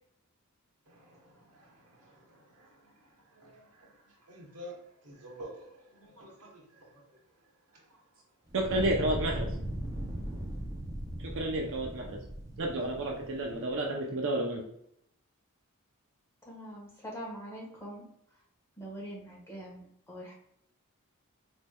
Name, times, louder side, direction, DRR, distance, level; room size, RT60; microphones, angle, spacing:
voice 1, 0.9-2.9 3.3-3.9 4.3-7.0 7.7-7.8, right 1 dB, 80° right, -1 dB, 1.1 m, -50 dB
Fire, 8.5-13.7, right 1 dB, 15° right, 0.5 m, -38 dB
voice 2, 8.5-9.5 11.4-12.2 12.6-14.6, right 1 dB, 60° right, 0 dB, 0.5 m, -31 dB
voice 3, 16.5-18.0 18.8-20.3, equal, 10° left, -4 dB, 1.2 m, -43 dB
4.1 x 3.2 x 2.2 m, 0.74 s
head